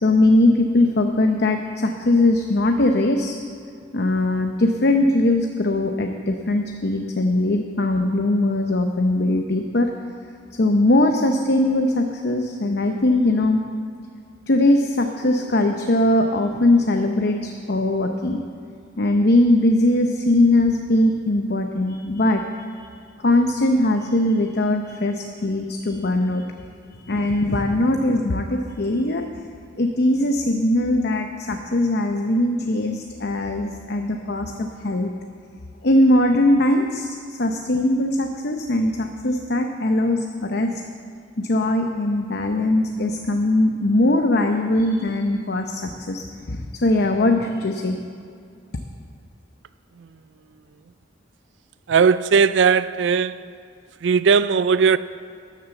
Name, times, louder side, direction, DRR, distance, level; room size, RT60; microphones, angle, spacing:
voice 1, 0.0-3.4 3.9-9.9 10.6-13.6 14.5-18.4 19.0-22.9 23.2-26.5 26.9-29.3 29.8-35.1 35.8-40.8 41.4-48.0, left 1 dB, 55° left, 0.8 m, -20 dB
voice 2, 51.9-53.5 54.0-55.0, right 5 dB, 65° right, 0.4 m, -18 dB
12.5 x 10.0 x 7.1 m
head